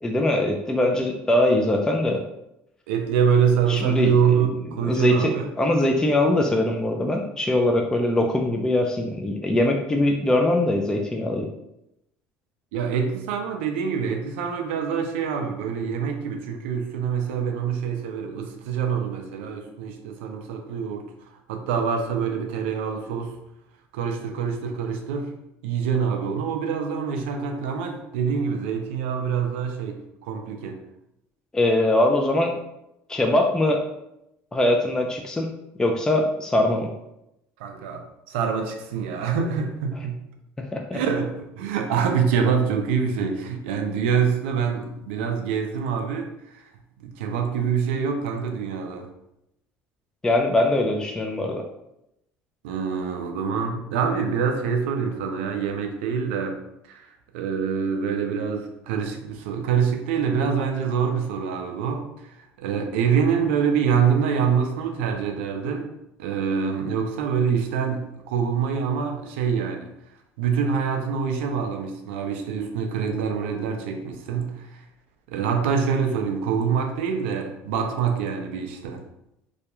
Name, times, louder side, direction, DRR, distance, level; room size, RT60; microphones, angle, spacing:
voice 1, 0.0-2.2 3.7-4.1 4.8-5.3 5.6-11.5 31.5-32.5 33.1-33.8 34.5-35.5 35.8-36.9 40.7-41.0 50.2-51.6, left 1 dB, 10° left, 2 dB, 0.3 m, -22 dB
voice 2, 2.9-5.5 12.7-21.1 21.5-23.4 23.9-25.3 25.6-30.8 37.6-40.2 40.9-46.6 47.0-49.1 52.6-56.6 56.9-57.1 57.3-65.9 66.2-69.9 70.4-74.8 75.3-79.0, right 6 dB, 90° right, 4 dB, 0.4 m, -25 dB
2.3 x 2.1 x 2.9 m, 0.84 s
supercardioid pair, 90°, 6 cm